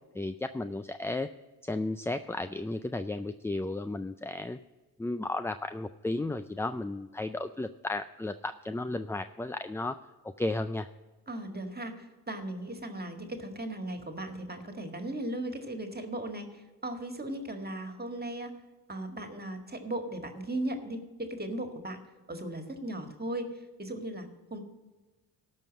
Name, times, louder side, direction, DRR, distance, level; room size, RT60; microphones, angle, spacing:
voice 1, 0.1-1.3 1.6-4.6 5.0-10.0 10.4-10.9, left 2 dB, 5° left, 10 dB, 0.3 m, -34 dB
voice 2, 11.3-18.5 18.9-22.0 22.3-23.5 23.8-24.6, right 1 dB, 25° right, 6 dB, 1.8 m, -37 dB
13.0 x 5.4 x 7.3 m, 1.2 s
supercardioid pair, 55°, 41 cm